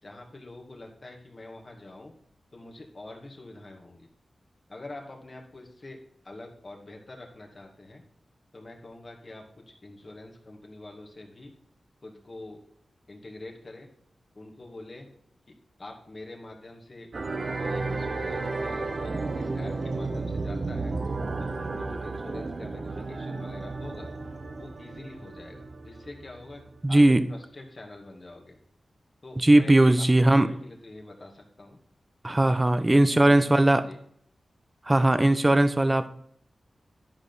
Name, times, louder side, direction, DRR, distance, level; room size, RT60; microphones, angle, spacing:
voice 1, 0.0-2.1 2.5-4.1 4.7-6.0 6.2-8.0 8.5-11.5 12.0-12.6 13.1-13.9 14.3-15.1 15.8-17.1 17.3-20.9 21.4-24.1 24.6-26.6 26.9-27.0 27.3-28.5 29.2-31.8 32.4-33.5 33.8-34.0, left 2 dB, 45° left, 1 dB, 2.2 m, -45 dB
sound 1, 17.1-26.8, right 3 dB, 55° right, 1.0 m, -33 dB
voice 2, 26.8-27.2 29.4-30.5 32.2-33.8 34.9-36.1, right 1 dB, 25° right, 11 dB, 0.8 m, -19 dB
11.5 x 5.1 x 4.1 m, 0.69 s
cardioid pair, 55°, 0 cm